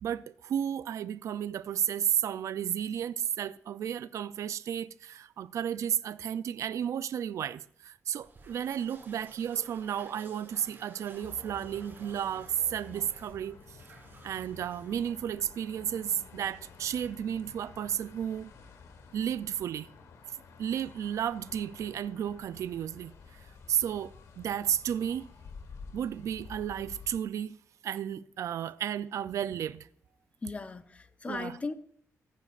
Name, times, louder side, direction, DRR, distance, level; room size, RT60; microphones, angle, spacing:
voice 1, 0.0-13.6 14.2-18.5 19.1-19.9 20.3-25.3 25.9-27.6 27.8-29.9 31.3-31.5, right 9 dB, 70° right, 0.3 m, -33 dB
sound 1, 8.1-15.8, right 3 dB, 40° right, 2.8 m, -54 dB
sound 2, 11.2-27.2, left 5 dB, 75° left, 1.3 m, -51 dB
voice 2, 30.4-31.7, left 3 dB, 25° left, 0.6 m, -37 dB
16.0 x 9.2 x 2.4 m
wide cardioid pair, 135°, 5 cm